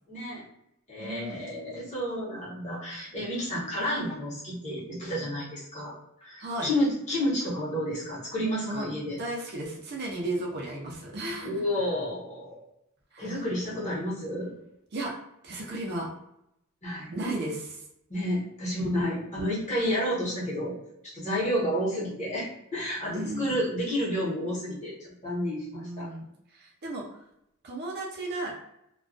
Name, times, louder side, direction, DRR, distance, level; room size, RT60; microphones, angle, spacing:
voice 1, 0.1-0.4 0.9-5.9 6.2-9.2 11.4-12.6 13.2-14.5 16.8-17.1 18.1-20.7 21.1-26.1, equal, 35° left, -7 dB, 0.9 m, -30 dB
voice 2, 1.0-1.4 6.4-6.7 8.6-8.9 9.2-11.5 13.1-13.3 14.9-15.1 15.4-16.1 17.1-17.8 23.1-23.6 25.7-27.2 27.6-28.5, right 2 dB, 50° right, -2 dB, 0.6 m, -34 dB
2.3 x 2.2 x 2.4 m, 0.79 s
head